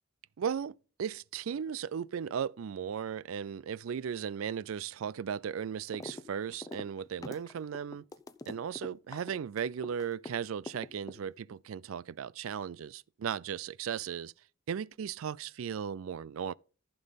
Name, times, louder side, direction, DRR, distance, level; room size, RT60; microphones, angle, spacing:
voice 1, 0.4-8.0 8.5-14.3 14.7-16.5, right 7 dB, 85° right, 0.4 m, -36 dB
sound 1, 5.9-6.2 6.5-10.3 10.7-11.5, left 2 dB, 20° left, 0.6 m, -43 dB
14.5 x 5.5 x 4.0 m
head